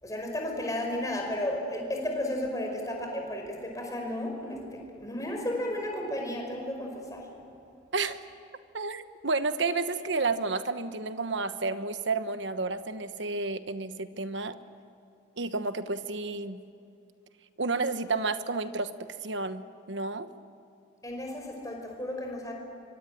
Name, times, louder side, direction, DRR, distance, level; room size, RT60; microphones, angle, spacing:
voice 1, 0.0-7.3 21.0-22.5, left 1 dB, 20° left, 1 dB, 5.1 m, -33 dB
voice 2, 8.7-14.5 15.4-16.6 17.6-18.9 19.2-20.3, right 3 dB, 70° right, 10 dB, 1.2 m, -31 dB
25.0 x 24.5 x 9.1 m, 2.6 s
head